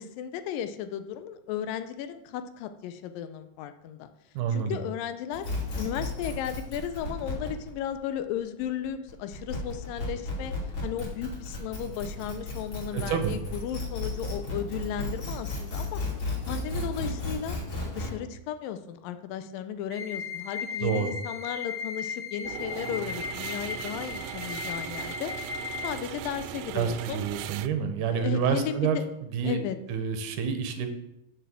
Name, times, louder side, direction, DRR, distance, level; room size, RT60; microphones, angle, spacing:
voice 1, 0.0-4.1 4.5-5.5 5.8-10.5 10.8-16.0 16.5-17.6 17.8-25.3 25.8-27.2 28.1-29.0 29.4-29.8, left 9 dB, 85° left, 10 dB, 2.4 m, -35 dB
voice 2, 4.4-4.8 12.9-13.4 20.8-21.1 26.7-29.0 29.3-30.9, right 7 dB, 70° right, 7 dB, 2.3 m, -28 dB
sound 1, 5.3-18.1, left 2 dB, 45° left, 3.9 m, -34 dB
sound 2, 19.9-25.9, left 6 dB, 25° left, 2.3 m, -36 dB
sound 3, 22.4-27.7, right 11 dB, 90° right, 2.3 m, -38 dB
7.2 x 6.7 x 7.6 m, 0.86 s
omnidirectional pair, 3.9 m